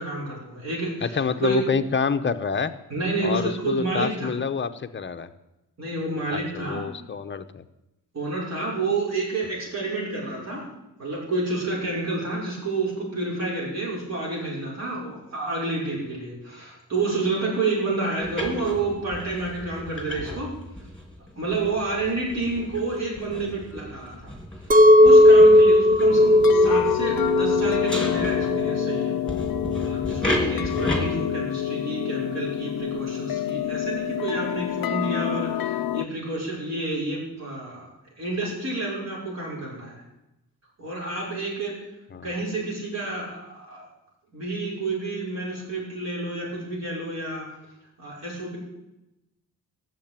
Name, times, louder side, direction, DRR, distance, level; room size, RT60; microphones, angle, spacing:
voice 1, 0.0-1.6 2.9-4.4 5.8-6.8 8.1-10.7 11.0-20.5 21.3-24.3 24.7-29.2 29.8-37.8 38.2-40.0 40.8-41.8 42.2-43.8 44.3-47.5 48.0-48.6, right 3 dB, 45° right, -5 dB, 5.7 m, -29 dB
voice 2, 1.0-2.7 3.2-5.3 6.3-7.6 42.1-42.3, left 6 dB, 30° left, 9 dB, 0.9 m, -27 dB
sound 1, 18.2-28.9 29.3-31.1, left 1 dB, ahead, 2.9 m, -34 dB
Chink clink, 24.7-29.9, left 1 dB, 25° right, 0.6 m, -16 dB
sound 2, 26.1-36.0, left 12 dB, 70° left, 0.6 m, -28 dB
18.0 x 7.8 x 9.0 m, 0.94 s
wide cardioid pair, 165°, 36 cm